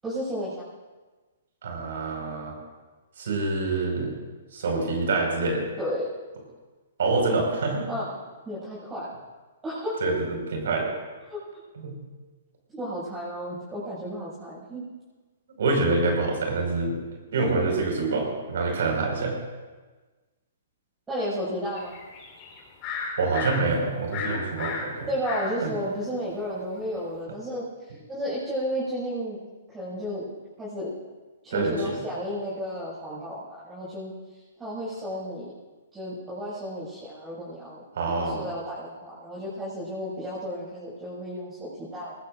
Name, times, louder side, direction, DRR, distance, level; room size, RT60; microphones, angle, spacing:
voice 1, 0.0-0.7 5.8-6.1 7.9-8.1 8.4-9.1 9.6-10.0 11.3-11.4 12.7-14.8 21.1-21.9 25.1-29.4 29.7-30.2 30.6-30.9 31.4-35.5 35.9-37.8 38.2-42.1, equal, 15° right, -10 dB, 6.5 m, -33 dB
voice 2, 1.6-2.5 3.2-4.1 4.5-5.6 7.0-7.9 10.0-10.9 11.8-12.0 15.6-16.9 17.3-19.4 23.2-25.1 25.6-25.7 31.5-32.0 37.9-38.4, right 3 dB, 65° right, 0 dB, 5.5 m, -26 dB
sound 1, 21.8-23.6 24.1-25.5 26.0-26.1, left 5 dB, 35° left, 4.2 m, -33 dB
21.5 x 20.0 x 2.6 m, 1.3 s
figure-of-eight pair, 120°, 0 cm